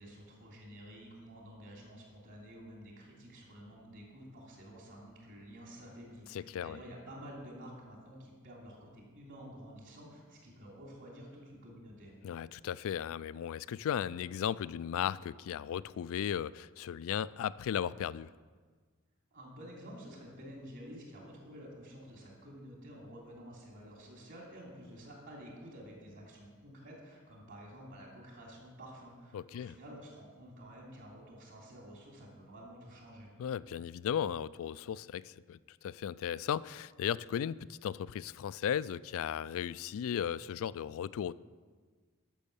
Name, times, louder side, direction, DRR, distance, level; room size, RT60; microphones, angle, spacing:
voice 1, 0.0-12.1 19.3-33.3, equal, 60° right, -2 dB, 3.3 m, -50 dB
voice 2, 6.3-6.8 12.2-18.4 29.3-29.8 33.4-41.3, left 9 dB, 65° left, 20 dB, 0.3 m, -36 dB
12.0 x 6.2 x 6.9 m, 1.5 s
head